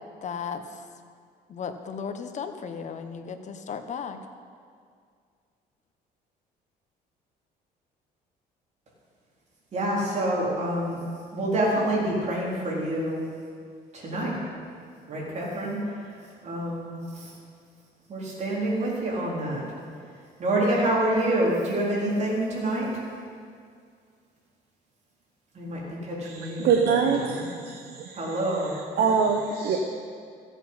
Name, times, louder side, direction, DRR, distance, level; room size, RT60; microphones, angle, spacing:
voice 1, 0.2-0.9 1.5-4.2, left 6 dB, 45° left, 8 dB, 1.0 m, -35 dB
voice 2, 9.7-11.0 11.3-13.2 13.9-14.4 15.1-15.8 16.4-17.3 18.1-19.6 20.4-23.0 25.5-27.4 28.1-28.7, right 1 dB, 40° right, -5 dB, 3.9 m, -27 dB
voice 3, 26.2-28.4 29.0-29.8, right 6 dB, 70° right, 3 dB, 1.0 m, -24 dB
14.5 x 8.2 x 5.7 m, 2.2 s
cardioid pair, 110°, 17 cm